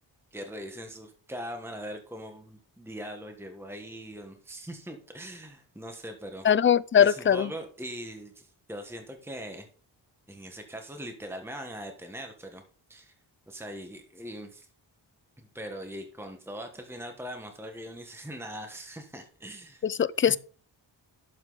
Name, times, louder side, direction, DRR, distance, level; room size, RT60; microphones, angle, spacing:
voice 1, 0.3-6.5 7.0-9.7 10.3-12.6 12.9-13.1 13.5-14.7 15.4-19.9 20.3-20.4, equal, 5° right, 1.4 m, -41 dB
voice 2, 6.5-7.5 19.8-20.4, left 8 dB, 30° left, 0.4 m, -21 dB
11.5 x 7.2 x 4.0 m
cardioid pair, 85°, 44 cm